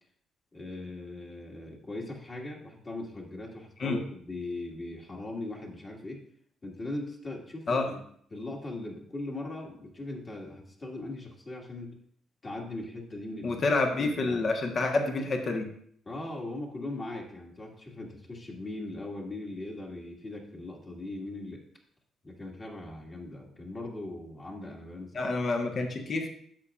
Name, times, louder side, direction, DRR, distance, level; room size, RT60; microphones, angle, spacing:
voice 1, 0.5-6.2 6.6-8.0 8.3-12.0 12.4-13.6 14.0-14.4 16.1-21.6 22.2-25.3, left 2 dB, 35° left, -1 dB, 2.1 m, -39 dB
voice 2, 13.4-15.7 25.1-26.3, left 3 dB, 50° left, 3 dB, 1.3 m, -28 dB
10.5 x 7.1 x 2.5 m, 0.63 s
cardioid pair, 90°, 0 cm